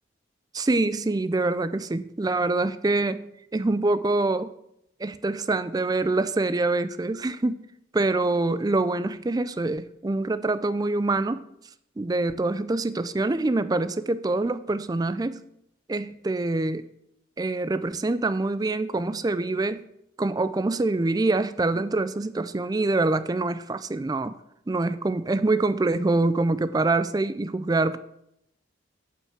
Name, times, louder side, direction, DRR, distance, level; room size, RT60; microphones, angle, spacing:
voice 1, 0.5-4.5 5.0-7.7 7.9-11.4 12.0-15.4 15.9-16.9 17.4-19.9 20.2-24.4 24.7-28.0, right 2 dB, 20° right, 13 dB, 0.4 m, -25 dB
9.1 x 5.6 x 7.3 m, 0.79 s
head